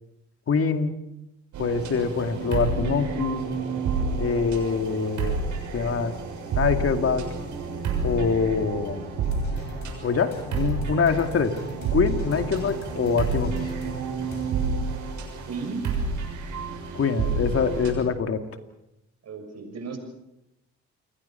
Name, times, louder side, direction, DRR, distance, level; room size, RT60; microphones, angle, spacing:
voice 1, 0.5-1.0 1.6-3.4 4.2-5.4 5.7-6.1 6.5-7.3 8.0-9.1 10.0-11.6 11.9-13.5 16.9-18.4, left 5 dB, 50° left, 7 dB, 2.5 m, -24 dB
sound 1, 1.5-17.9, right 4 dB, 80° right, 6.8 m, -30 dB
sound 2, 9.2-14.5, left 4 dB, 65° left, 7.2 m, -41 dB
voice 2, 15.5-15.8 19.2-20.0, right 4 dB, 60° right, 5 dB, 6.4 m, -34 dB
28.5 x 21.5 x 5.8 m, 0.89 s
cardioid pair, 90°, 30 cm